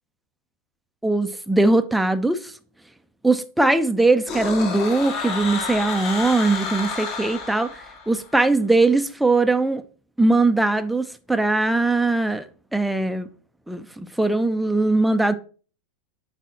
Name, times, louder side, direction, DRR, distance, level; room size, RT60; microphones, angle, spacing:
voice 1, 1.0-2.5 3.2-7.7 8.1-9.8 10.2-12.4 12.7-13.3 13.7-15.3, right 2 dB, 5° right, 0.5 m, -20 dB
sound 1, 4.3-8.3, left 4 dB, 35° left, 1.7 m, -30 dB
8.1 x 4.1 x 4.2 m
figure-of-eight pair, 90°, 0 cm